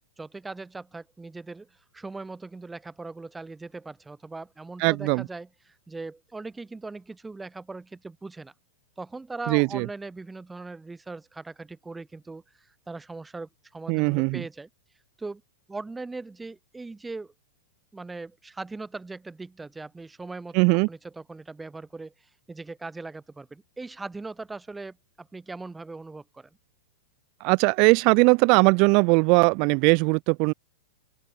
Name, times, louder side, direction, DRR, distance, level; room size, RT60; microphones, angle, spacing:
voice 1, 0.2-8.5 9.0-14.7 15.2-15.4 15.7-17.3 17.9-20.6 20.9-22.1 22.5-26.5, right 3 dB, 10° right, 0.9 m, -40 dB
voice 2, 4.8-5.3 9.5-9.9 13.9-14.4 20.5-20.9 27.4-30.5, right 33 dB, 50° right, 0.4 m, -20 dB
open air
hypercardioid pair, 110°, 0 cm